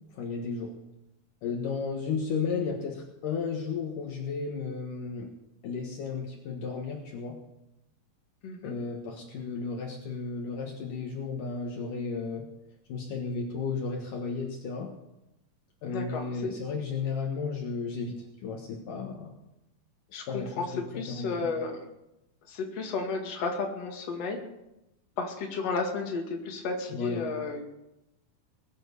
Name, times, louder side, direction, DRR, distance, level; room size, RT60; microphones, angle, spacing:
voice 1, 0.1-0.7 1.4-5.3 5.6-7.4 8.6-12.5 12.9-14.9 15.8-19.4 20.3-20.7 21.1-21.4 26.9-27.2, left 5 dB, 65° left, 1 dB, 2.9 m, -33 dB
voice 2, 8.4-8.7 15.9-16.5 20.1-21.8 22.5-24.4 25.2-27.6, left 4 dB, 50° left, 1 dB, 3.0 m, -33 dB
21.0 x 9.1 x 7.0 m, 0.90 s
omnidirectional pair, 4.3 m